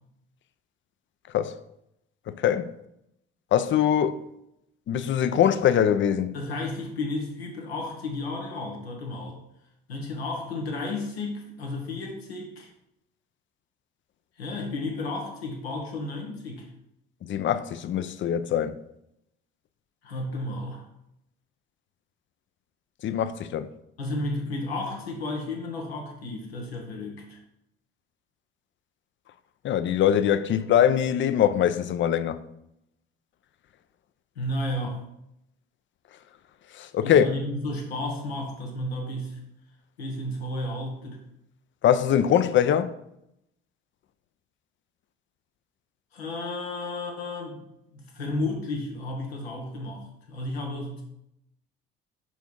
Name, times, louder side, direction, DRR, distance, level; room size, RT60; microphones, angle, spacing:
voice 1, 2.4-2.7 3.5-4.2 4.9-6.4 17.2-18.8 23.0-23.7 29.6-32.4 36.8-37.3 41.8-42.9, left 9 dB, 40° left, 0.5 m, -22 dB
voice 2, 6.3-9.4 9.9-12.7 14.4-16.7 20.0-20.8 24.0-27.4 34.3-35.0 37.0-39.4 40.0-41.2 46.1-47.6 47.9-51.0, left 2 dB, 90° left, 1.3 m, -32 dB
5.6 x 4.5 x 4.6 m
hypercardioid pair, 55°, 30 cm